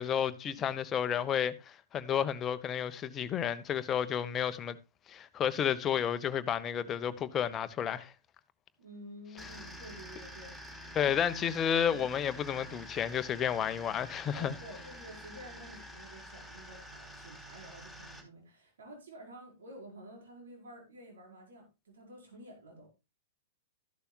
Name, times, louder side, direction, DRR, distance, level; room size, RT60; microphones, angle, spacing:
voice 1, 0.0-4.8 5.1-8.1 10.9-14.5, left 8 dB, 25° left, 1.1 m, -31 dB
voice 2, 8.8-11.2 11.9-12.1 14.3-22.9, right 1 dB, 65° right, 5.0 m, -51 dB
sound 1, 9.4-18.2, equal, 10° right, 5.2 m, -48 dB
14.0 x 11.5 x 2.3 m
figure-of-eight pair, 105°, 0 cm